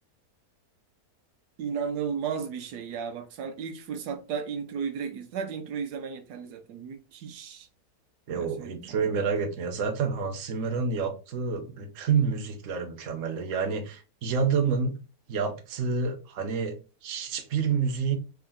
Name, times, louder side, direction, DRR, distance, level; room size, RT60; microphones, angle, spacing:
voice 1, 1.6-7.7 8.3-9.0, right 6 dB, 85° right, 1.3 m, -34 dB
voice 2, 8.3-15.0 15.3-18.2, right 5 dB, 60° right, 1.2 m, -28 dB
3.7 x 3.5 x 3.6 m
omnidirectional pair, 1.7 m